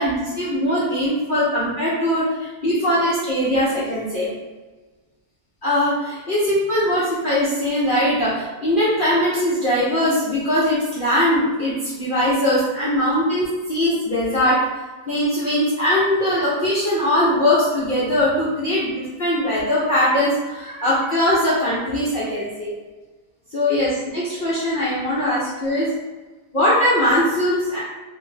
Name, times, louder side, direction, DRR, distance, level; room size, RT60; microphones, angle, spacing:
voice 1, 0.0-4.3 5.6-14.6 15.1-22.7 23.5-25.9 26.5-27.8, left 1 dB, 75° left, -9 dB, 0.4 m, -21 dB
3.3 x 2.0 x 3.1 m, 1.3 s
omnidirectional pair, 1.8 m